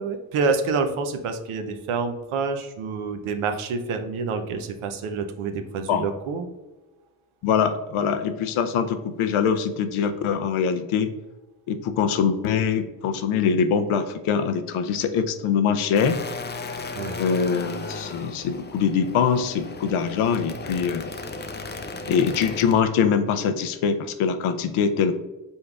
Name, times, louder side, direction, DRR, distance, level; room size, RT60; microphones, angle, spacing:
voice 1, 0.0-6.5 16.9-17.2, right 4 dB, 75° right, 7 dB, 0.7 m, -27 dB
voice 2, 7.4-11.1 11.7-16.2 17.2-21.1 22.1-25.1, left 6 dB, 75° left, 8 dB, 0.6 m, -23 dB
sound 1, 15.9-22.8, left 3 dB, 20° left, 0.5 m, -35 dB
5.3 x 3.8 x 2.3 m, 1.1 s
supercardioid pair, 40°, 50 cm